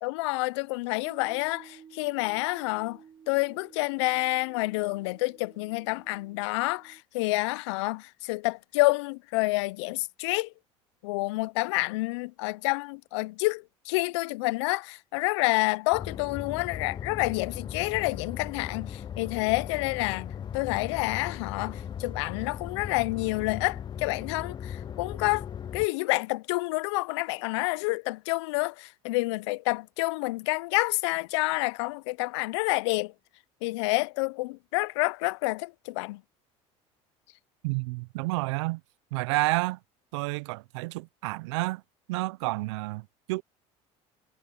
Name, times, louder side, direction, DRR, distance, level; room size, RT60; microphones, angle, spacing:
voice 1, 0.0-3.0 3.3-10.5 11.0-25.5 25.7-33.1 33.6-36.2, left 24 dB, 90° left, 0.4 m, -28 dB
sound 1, 1.0-7.0, right 7 dB, 40° right, 4.1 m, -54 dB
sound 2, 15.9-25.9, left 8 dB, 30° left, 0.5 m, -38 dB
voice 2, 37.6-38.8 39.1-39.8 40.1-41.8 42.1-43.4, right 23 dB, 90° right, 0.4 m, -30 dB
supercardioid pair, 100°, 14 cm